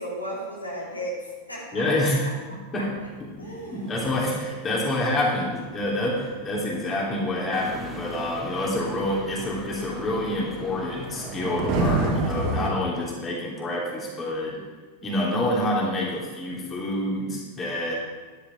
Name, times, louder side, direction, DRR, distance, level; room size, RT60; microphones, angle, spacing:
voice 1, 0.0-1.8 2.2-2.3 2.8-2.9 3.4-3.8, equal, 85° left, -5 dB, 2.7 m, -35 dB
voice 2, 1.7-2.2 2.7-2.9 3.7-14.6 15.0-18.0, left 1 dB, 25° left, -4 dB, 3.2 m, -27 dB
sound 1, 2.7-12.7, right 2 dB, 40° right, 2.2 m, -32 dB
sound 2, 7.5-12.5, equal, ahead, 2.0 m, -41 dB
13.0 x 10.5 x 3.6 m, 1.4 s
figure-of-eight pair, 90°, 0 cm